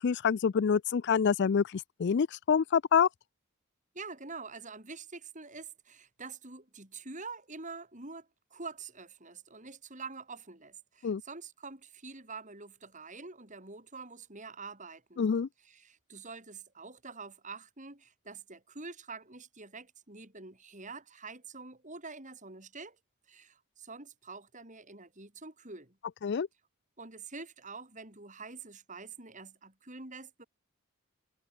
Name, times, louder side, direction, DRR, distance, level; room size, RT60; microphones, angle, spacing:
voice 1, 0.0-3.1 11.0-11.2 15.2-15.5 26.2-26.5, left 6 dB, 50° left, 0.4 m, -27 dB
voice 2, 3.9-15.3 15.6-23.0 23.3-26.0 27.0-30.5, right 4 dB, 35° right, 4.8 m, -46 dB
head